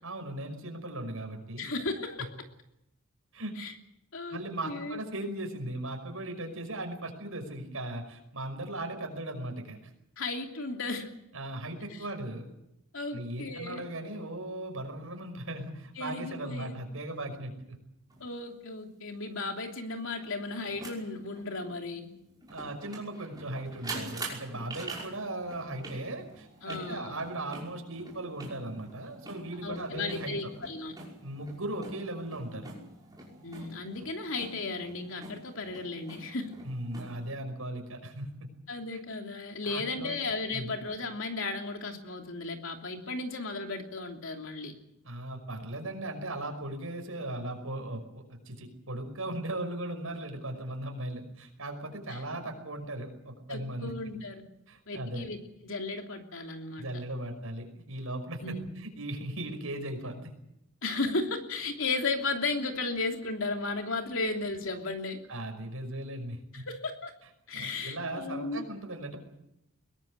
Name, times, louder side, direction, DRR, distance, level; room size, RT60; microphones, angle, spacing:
voice 1, 0.0-1.7 3.3-3.5 4.3-9.9 11.3-12.5 13.1-17.8 22.5-30.3 31.2-32.7 36.6-38.5 39.6-40.2 40.5-40.7 45.0-53.9 54.7-55.3 56.8-60.3 65.3-66.6 67.5-69.2, right 1 dB, 75° right, 5 dB, 5.6 m, -38 dB
voice 2, 1.6-2.3 3.6-3.7 4.1-4.4 4.6-5.0 10.2-11.1 12.9-13.9 16.0-16.8 18.2-22.1 26.6-27.2 29.6-30.9 33.4-36.5 38.7-44.7 52.1-52.2 53.5-54.4 54.9-55.4 55.6-56.9 58.4-58.7 60.8-65.2 66.5-67.1 67.5-68.6, left 3 dB, 65° left, 3 dB, 3.0 m, -35 dB
sound 1, 18.1-18.2 20.2-37.3, right 2 dB, 20° right, 5.6 m, -46 dB
22.0 x 18.5 x 8.1 m, 0.82 s
head